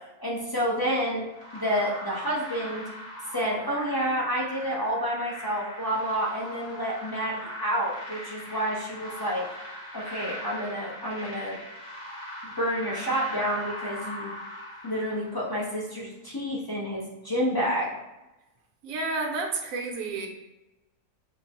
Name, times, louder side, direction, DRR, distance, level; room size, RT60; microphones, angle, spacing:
voice 1, 0.2-1.2 1.5-2.9 3.3-9.5 9.9-11.6 12.4-14.3 14.8-17.9, equal, 30° left, -6 dB, 0.4 m, -29 dB
sound 1, 1.3-15.7, equal, 45° left, 1.2 m, -40 dB
voice 2, 18.8-20.3, right 3 dB, 65° right, 2 dB, 1.0 m, -30 dB
5.7 x 2.1 x 2.9 m, 1.0 s
omnidirectional pair, 1.6 m